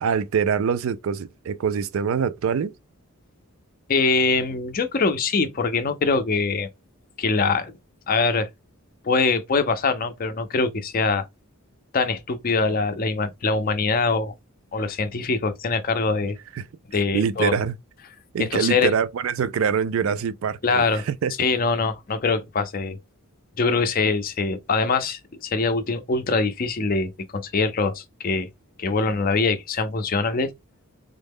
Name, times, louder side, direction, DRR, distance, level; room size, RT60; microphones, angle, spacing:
voice 1, 0.0-2.7 16.6-16.7 17.1-17.8 18.3-21.3, right 7 dB, 65° right, 0.3 m, -24 dB
voice 2, 3.9-6.7 7.2-7.7 8.1-8.5 9.0-11.2 11.9-14.3 14.7-16.4 16.9-17.5 18.4-18.9 20.6-21.1 21.4-23.0 23.6-28.5 28.8-30.5, left 4 dB, 40° left, 0.5 m, -23 dB
3.6 x 2.1 x 3.5 m
head